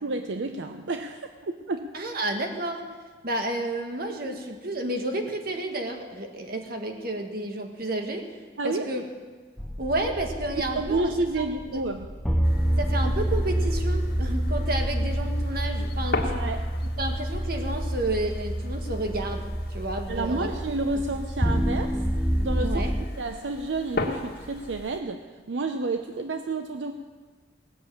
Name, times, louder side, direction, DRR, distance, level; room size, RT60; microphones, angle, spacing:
voice 1, 0.0-1.9 8.6-9.1 10.8-12.1 16.3-16.6 20.1-22.0 22.4-22.8 23.2-26.9, right 3 dB, 80° right, 7 dB, 0.7 m, -30 dB
voice 2, 1.9-2.8 3.2-8.3 8.6-9.0 9.8-11.1 11.4-11.5 11.7-11.8 12.8-16.4 17.0-20.5 22.6-22.9, right 1 dB, 55° right, 4 dB, 1.7 m, -31 dB
sound 1, 9.6-23.0, equal, 5° left, 0.6 m, -28 dB
sound 2, 12.4-25.0, left 2 dB, 60° left, 1.7 m, -38 dB
18.5 x 7.0 x 8.7 m, 1.4 s
head